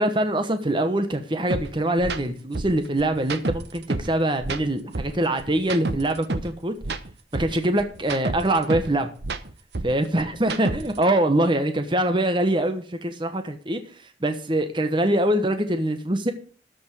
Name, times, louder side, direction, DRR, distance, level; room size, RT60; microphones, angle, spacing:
voice 1, 0.0-6.7 7.3-9.1 9.8-13.8 14.2-16.3, right 1 dB, 30° right, 8 dB, 1.1 m, -23 dB
sound 1, 1.5-1.6 2.0-2.2 2.5-4.1 4.4-6.5 6.8-8.9 9.2-11.0, right 2 dB, 70° right, 1.0 m, -29 dB
13.5 x 5.3 x 6.6 m, 0.41 s
head